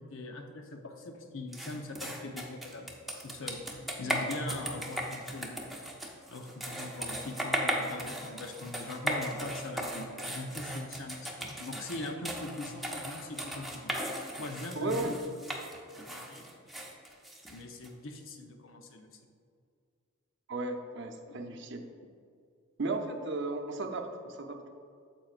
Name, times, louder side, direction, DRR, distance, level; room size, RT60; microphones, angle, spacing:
voice 1, 0.0-3.0 3.2-3.6 4.0-5.7 6.3-13.9 14.4-15.2 16.0-16.6 17.5-19.1 21.3-21.4, left 2 dB, 65° left, 4 dB, 0.8 m, -41 dB
sound 1, 1.5-17.9, equal, ahead, 0.7 m, -37 dB
voice 2, 14.7-15.2 20.5-21.9 22.8-24.6, right 2 dB, 55° right, 3 dB, 0.7 m, -35 dB
9.1 x 7.4 x 2.5 m, 2.3 s
head